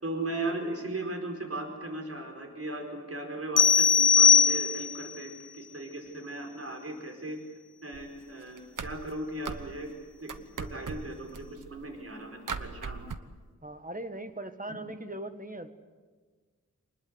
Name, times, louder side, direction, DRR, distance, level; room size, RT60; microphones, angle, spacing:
voice 1, 0.0-7.4 7.8-9.9 10.2-10.3 10.6-13.0, right 2 dB, 45° right, 2 dB, 4.8 m, -37 dB
sound 1, 3.6-5.1, left 6 dB, 80° left, 0.7 m, -20 dB
sound 2, 7.9-8.2 8.5-10.0 10.3-12.1 12.5-13.2, right 5 dB, 75° right, 1.2 m, -39 dB
voice 2, 13.6-15.7, right 1 dB, 25° right, 8 dB, 1.7 m, -39 dB
26.0 x 20.0 x 8.2 m, 1.4 s
wide cardioid pair, 85°, 32 cm